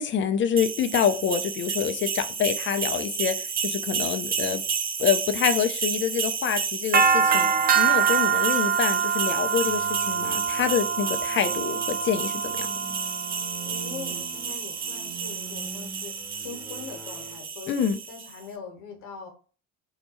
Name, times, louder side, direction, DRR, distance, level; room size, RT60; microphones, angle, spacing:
voice 1, 0.0-4.6 5.0-7.5 7.8-12.7 17.7-18.0, left 8 dB, 35° left, 0.5 m, -26 dB
sound 1, 0.6-18.3, right 6 dB, 25° right, 0.5 m, -27 dB
voice 2, 7.3-7.7 13.6-17.8 18.1-19.3, left 5 dB, 60° left, 1.0 m, -42 dB
sound 2, 9.6-17.4, right 4 dB, 5° right, 1.1 m, -43 dB
2.8 x 2.2 x 4.1 m
hypercardioid pair, 55°, 37 cm